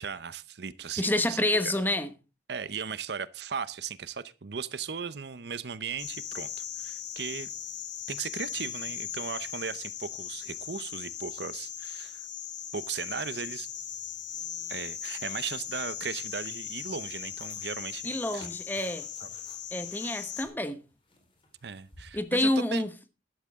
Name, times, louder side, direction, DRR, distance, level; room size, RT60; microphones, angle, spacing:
voice 1, 0.0-1.8 2.5-6.5 6.8-7.5 8.1-12.2 12.7-13.7 14.7-18.5 19.2-19.3 21.6-22.8, right 6 dB, 65° right, 0.7 m, -37 dB
voice 2, 1.0-2.1 18.0-19.1 19.7-20.8 22.1-22.9, left 1 dB, 10° left, 1.1 m, -28 dB
sound 1, 6.0-20.5, left 9 dB, 85° left, 2.2 m, -38 dB
sound 2, 17.2-22.5, left 2 dB, 30° left, 4.1 m, -56 dB
13.5 x 12.0 x 3.6 m
head